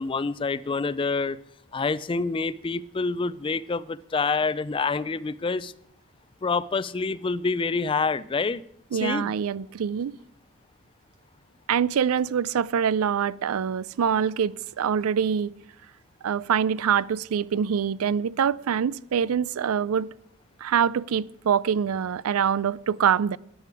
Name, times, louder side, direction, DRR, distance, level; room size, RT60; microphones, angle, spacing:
voice 1, 0.0-1.4 1.7-5.7 6.4-8.6 9.0-9.3, left 4 dB, 25° left, 0.4 m, -27 dB
voice 2, 8.9-10.2 11.7-15.5 16.2-20.1 20.6-23.4, right 8 dB, 85° right, 0.4 m, -25 dB
13.5 x 10.0 x 4.8 m
head